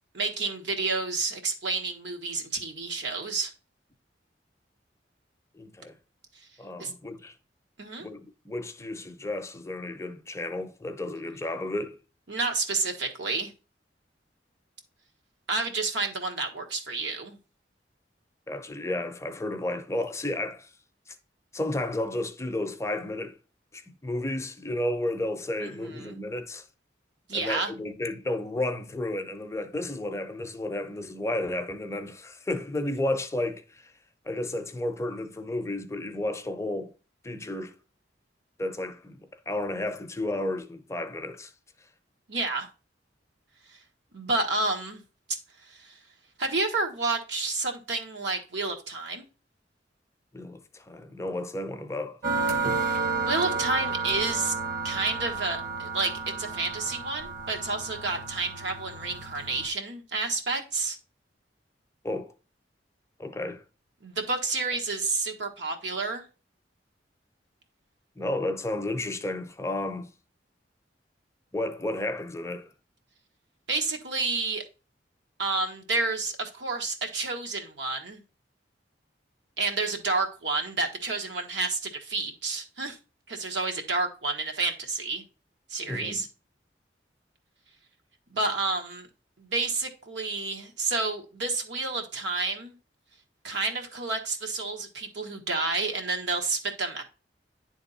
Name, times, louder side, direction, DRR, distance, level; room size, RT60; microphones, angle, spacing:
voice 1, 0.1-3.5 6.8-6.9 7.8-8.1 12.3-13.5 15.5-17.4 25.6-26.2 27.3-27.7 42.3-42.7 44.1-45.0 45.6-46.0 46.4-49.3 52.8-54.5 54.8-61.0 64.0-66.2 73.7-74.6 75.4-78.2 79.6-83.0 83.3-85.2 85.7-86.3 88.3-89.1 89.4-92.7 93.4-97.0, right 3 dB, 75° right, 1.4 m, -30 dB
voice 2, 5.5-6.0 6.6-7.3 8.0-12.0 18.5-20.7 21.1-21.2 21.5-23.4 23.7-26.7 27.3-33.9 34.3-36.9 37.2-37.7 38.6-41.5 50.3-52.2 62.0-62.3 63.2-63.6 68.2-70.1 71.5-72.7 85.9-86.3, left 1 dB, 15° left, 0.6 m, -32 dB
sound 1, 52.2-59.7, right 4 dB, 50° right, 1.1 m, -31 dB
9.9 x 3.6 x 4.0 m
head